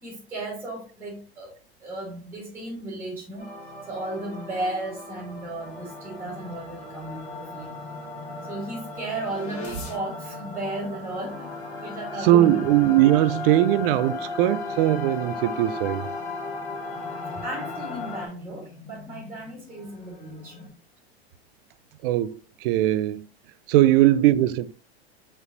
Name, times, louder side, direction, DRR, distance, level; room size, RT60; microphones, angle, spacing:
voice 1, 0.0-3.5 3.8-7.7 8.5-11.5 11.8-12.6 17.3-20.7, right 2 dB, 5° right, 1.6 m, -35 dB
sound 1, 3.4-18.3, left 3 dB, 80° left, 1.7 m, -36 dB
sound 2, 6.2-20.7, left 4 dB, 20° left, 1.8 m, -48 dB
voice 2, 12.2-16.1 22.0-23.3 23.7-24.7, right 14 dB, 60° right, 0.4 m, -20 dB
5.1 x 3.2 x 2.7 m
hypercardioid pair, 110°, 32 cm